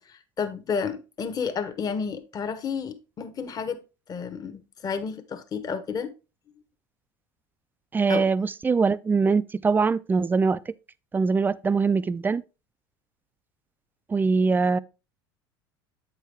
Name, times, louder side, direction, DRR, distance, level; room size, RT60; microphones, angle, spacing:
voice 1, 0.1-3.8 4.1-6.1 8.1-8.3, left 6 dB, 30° left, 0.9 m, -31 dB
voice 2, 7.9-10.6 11.1-12.4 14.1-14.8, right 4 dB, 15° right, 0.3 m, -22 dB
8.1 x 4.7 x 3.4 m
hypercardioid pair, 85°, 12 cm